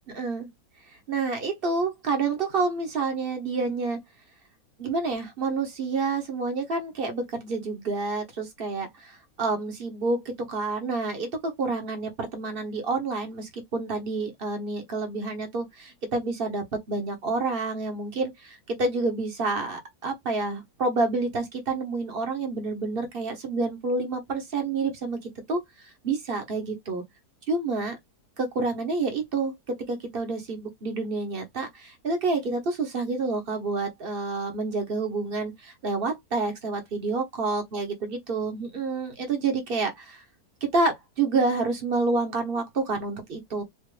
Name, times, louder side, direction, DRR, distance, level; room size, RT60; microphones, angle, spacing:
voice 1, 0.1-0.5 1.1-4.0 4.8-27.0 27.5-28.0 28.4-40.2 40.7-43.6, right 3 dB, 35° right, 1.4 m, -28 dB
4.4 x 2.9 x 3.3 m
omnidirectional pair, 1.7 m